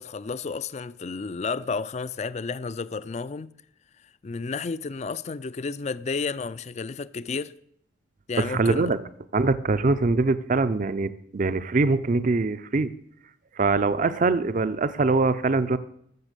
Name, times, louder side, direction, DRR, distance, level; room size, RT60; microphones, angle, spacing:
voice 1, 0.0-3.5 4.2-7.5 8.3-8.9, left 4 dB, 35° left, 0.4 m, -31 dB
voice 2, 8.4-9.0 9.3-12.9 13.6-15.8, right 3 dB, 40° right, 0.5 m, -23 dB
13.5 x 7.2 x 6.7 m
head